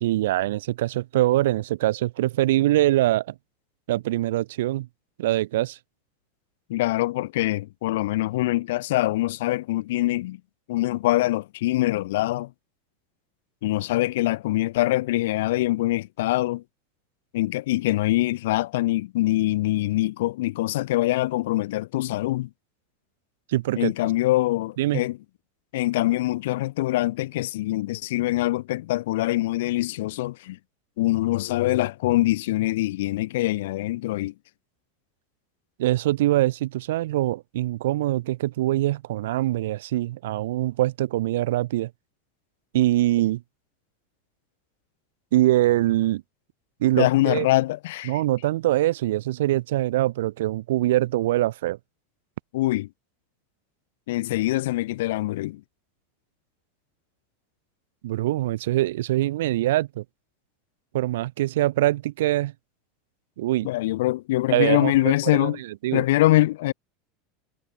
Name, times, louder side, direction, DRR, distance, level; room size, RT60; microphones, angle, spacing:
voice 1, 0.0-3.3 3.9-4.9 5.2-5.8 23.5-23.9 24.8-25.0 35.8-41.9 42.7-43.4 45.3-46.2 46.8-47.5 48.1-51.8 58.0-60.0 60.9-62.5 63.4-63.7 64.5-64.9 65.3-65.6 65.8-66.0, right 15 dB, 80° right, 1.1 m, -23 dB
voice 2, 6.7-10.4 10.7-12.5 13.6-16.6 17.3-22.5 23.8-25.2 25.7-30.6 31.0-34.3 47.0-48.2 52.5-52.9 54.1-55.6 63.6-65.6 65.9-66.7, left 17 dB, 70° left, 0.8 m, -24 dB
supercardioid pair, 175°, 0 cm